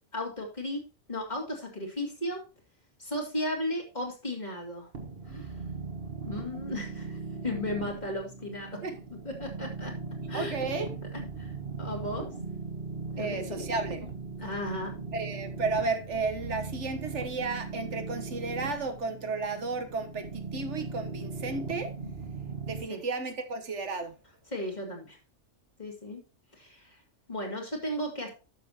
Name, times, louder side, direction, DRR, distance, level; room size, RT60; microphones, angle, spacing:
voice 1, 0.1-0.8 1.1-2.4 3.0-4.9 5.3-5.5 6.3-7.2 7.4-8.8 9.2-9.9 10.3-10.5 11.4-12.3 13.1-13.7 14.4-14.9 22.9-23.0 24.5-25.2 25.8-26.2 26.5-27.0 27.3-28.3, left 1 dB, 35° left, 2.7 m, -35 dB
sound 1, 4.9-22.8, right 4 dB, 50° right, 1.7 m, -39 dB
voice 2, 10.3-10.9 13.2-14.1 15.1-21.9 22.6-24.1, right 3 dB, 75° right, 1.5 m, -33 dB
11.5 x 6.9 x 2.9 m
omnidirectional pair, 1.2 m